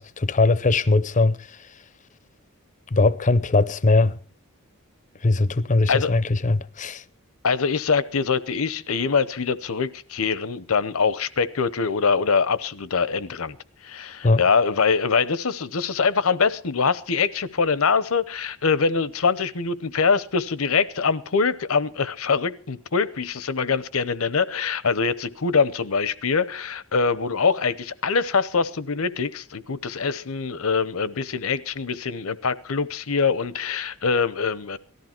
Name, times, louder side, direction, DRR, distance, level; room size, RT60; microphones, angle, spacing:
voice 1, 0.0-1.4 2.9-4.2 5.2-7.0 14.2-14.4, left 3 dB, 35° left, 0.6 m, -20 dB
voice 2, 7.4-13.5 13.8-34.8, left 5 dB, 70° left, 0.8 m, -23 dB
18.5 x 13.5 x 4.4 m
head